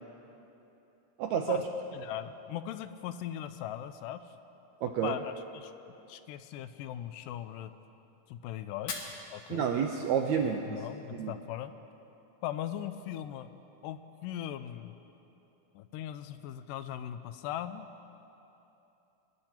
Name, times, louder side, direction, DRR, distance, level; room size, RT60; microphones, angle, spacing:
voice 1, 1.2-1.6 4.8-5.2 9.5-10.8 11.1-11.3, right 8 dB, 80° right, 3 dB, 1.6 m, -29 dB
voice 2, 1.9-4.4 5.0-5.7 6.1-7.7 8.3-9.7 10.7-11.7 12.4-13.5 13.8-14.9 15.8-17.9, left 11 dB, 85° left, 11 dB, 2.1 m, -39 dB
Fire, 8.7-10.7, left 4 dB, 55° left, 1.9 m, -44 dB
22.5 x 10.5 x 4.4 m, 3.0 s
omnidirectional pair, 3.9 m